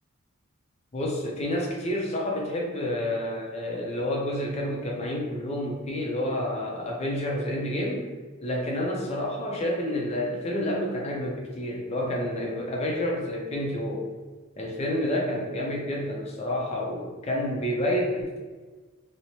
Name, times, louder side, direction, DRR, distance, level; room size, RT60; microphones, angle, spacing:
voice 1, 0.9-8.0 8.4-14.1 14.6-18.4, left 1 dB, 30° left, -1 dB, 0.4 m, -29 dB
3.0 x 2.0 x 2.7 m, 1.4 s
head